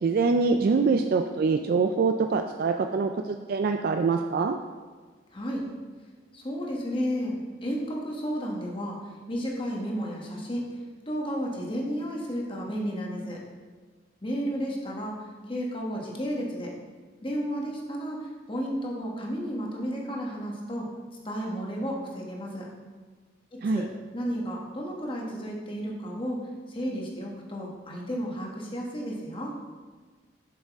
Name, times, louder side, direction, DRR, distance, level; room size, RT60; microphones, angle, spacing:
voice 1, 0.0-4.6 23.6-23.8, right 4 dB, 55° right, 5 dB, 0.3 m, -24 dB
voice 2, 5.3-5.7 6.3-10.8 11.0-13.4 14.2-16.7 17.2-20.9 21.2-22.7 23.5-23.9 24.1-29.5, equal, 30° left, -1 dB, 1.2 m, -32 dB
7.3 x 6.4 x 3.5 m, 1.4 s
head